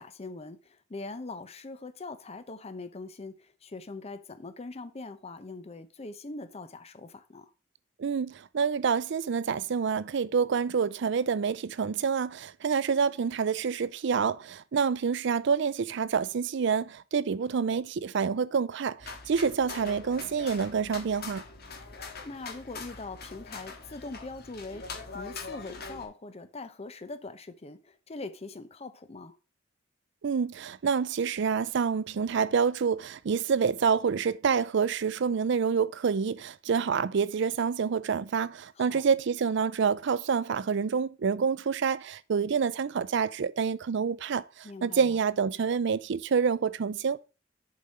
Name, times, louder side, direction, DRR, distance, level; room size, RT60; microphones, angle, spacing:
voice 1, 0.0-7.5 21.9-29.4 38.8-39.0 44.6-45.2, left 3 dB, 35° left, 0.7 m, -42 dB
voice 2, 8.0-21.4 30.2-47.2, right 6 dB, 65° right, 0.4 m, -27 dB
Bhagalpur silk weaving handlloom, 19.0-26.1, left 4 dB, 55° left, 1.7 m, -43 dB
7.0 x 4.9 x 5.4 m
head